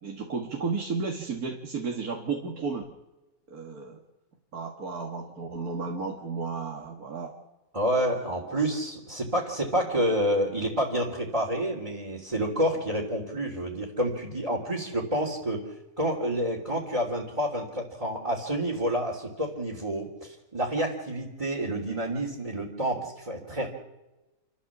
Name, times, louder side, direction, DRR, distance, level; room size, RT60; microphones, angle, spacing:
voice 1, 0.0-2.9 3.5-4.0 4.5-7.3, right 4 dB, 80° right, 2 dB, 2.3 m, -33 dB
voice 2, 7.7-15.6 16.0-23.7, right 1 dB, 20° right, -6 dB, 3.0 m, -29 dB
28.5 x 13.5 x 7.3 m, 1.1 s
omnidirectional pair, 1.6 m